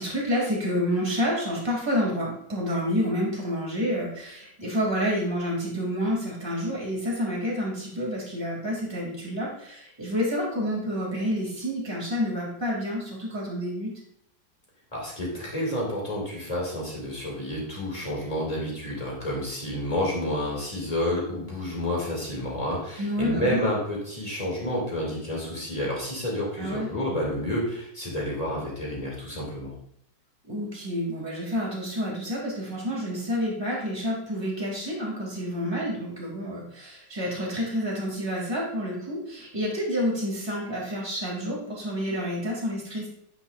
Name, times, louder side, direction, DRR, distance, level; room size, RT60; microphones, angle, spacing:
voice 1, 0.0-13.9 23.0-23.6 26.6-26.9 30.5-43.1, equal, 10° right, -4 dB, 2.5 m, -29 dB
voice 2, 14.9-29.7, left 1 dB, 20° left, -4 dB, 2.3 m, -30 dB
9.4 x 6.2 x 2.5 m, 0.72 s
omnidirectional pair, 2.1 m